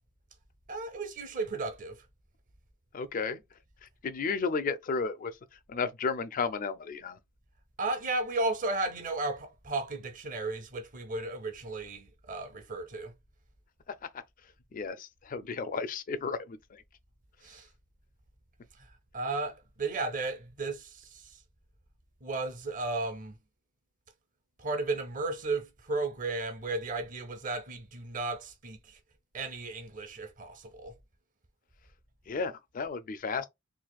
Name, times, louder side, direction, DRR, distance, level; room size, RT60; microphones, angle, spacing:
voice 1, 0.7-2.0 7.8-13.1 17.4-17.7 18.8-18.9 19.1-21.3 22.2-23.3 24.6-29.0 29.3-30.9, right 3 dB, 40° right, 0.7 m, -34 dB
voice 2, 2.9-3.4 3.8-5.4 5.7-7.2 14.7-16.8 32.3-33.5, left 4 dB, 40° left, 0.4 m, -33 dB
4.0 x 2.4 x 2.3 m
head